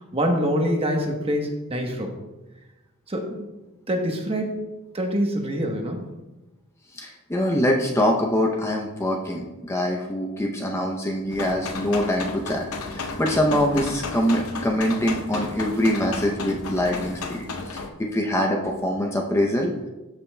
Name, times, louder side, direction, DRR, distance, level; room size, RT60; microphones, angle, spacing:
voice 1, 0.1-2.2 3.1-3.5 3.9-4.6 4.9-6.0, equal, 25° right, 2 dB, 1.0 m, -25 dB
voice 2, 6.9-19.9, equal, 15° left, 1 dB, 0.6 m, -24 dB
sound 1, 11.3-17.9, left 3 dB, 70° left, 0.8 m, -33 dB
13.5 x 5.5 x 2.2 m, 1.1 s
head